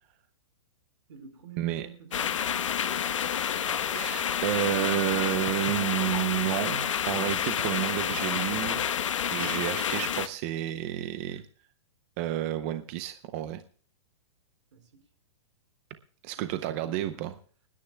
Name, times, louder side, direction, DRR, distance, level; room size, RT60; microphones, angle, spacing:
voice 1, 1.1-2.5 14.7-15.0 16.3-17.2, right 7 dB, 75° right, 4.6 m, -48 dB
sound 1, 2.1-10.3, left 9 dB, 80° left, 1.2 m, -29 dB
voice 2, 3.9-8.9 9.3-11.4 12.2-13.6 16.2-17.3, right 14 dB, 25° right, 0.6 m, -30 dB
30.0 x 10.0 x 2.2 m
hypercardioid pair, 170°, 16 cm